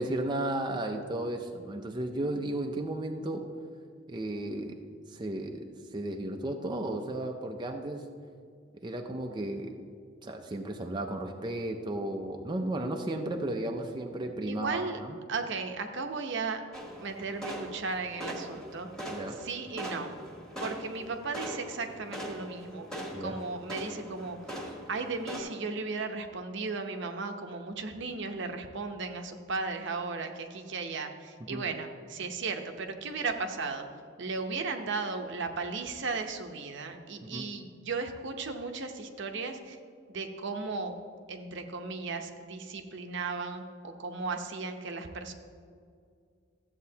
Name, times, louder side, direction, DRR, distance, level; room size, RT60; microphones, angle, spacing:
voice 1, 0.0-3.5 4.1-8.1 8.8-9.9 10.2-15.2 19.1-19.4 23.1-23.4 31.5-31.6 37.2-37.5, right 1 dB, 20° right, 3 dB, 0.5 m, -34 dB
voice 2, 14.5-15.0 15.3-16.6 17.0-18.9 19.4-20.1 20.6-24.4 24.9-33.8 34.2-39.8 40.1-40.9 41.3-45.3, right 4 dB, 65° right, 6 dB, 0.7 m, -36 dB
sound 1, 16.7-25.4, equal, 5° left, 1.5 m, -41 dB
13.5 x 8.0 x 2.8 m, 2.2 s
head